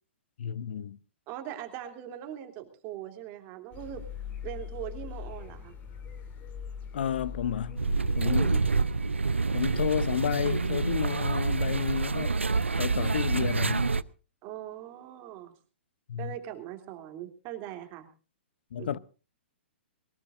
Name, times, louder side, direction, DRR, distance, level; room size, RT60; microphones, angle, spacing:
voice 1, 0.4-1.0 6.9-8.7 9.5-12.4 12.8-13.9 16.1-16.3 18.7-19.0, left 9 dB, 60° left, 0.8 m, -31 dB
voice 2, 1.3-4.1 4.4-5.7 8.2-8.6 14.4-15.5 16.2-18.1 18.8-19.0, right 12 dB, 35° right, 3.0 m, -41 dB
sound 1, 3.7-10.8, left 7 dB, 25° left, 2.8 m, -42 dB
sound 2, 7.8-14.0, right 4 dB, 85° right, 0.6 m, -27 dB
22.0 x 19.5 x 2.6 m
figure-of-eight pair, 120°, 6 cm